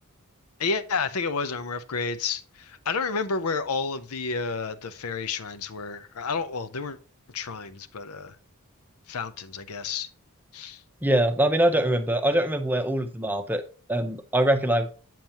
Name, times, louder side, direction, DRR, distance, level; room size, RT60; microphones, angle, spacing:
voice 1, 0.6-7.0 7.3-8.4 9.1-10.1 10.5-10.8, left 4 dB, 80° left, 0.6 m, -30 dB
voice 2, 11.0-13.6 13.9-14.9, right 1 dB, 10° right, 0.7 m, -23 dB
7.6 x 7.2 x 2.9 m
head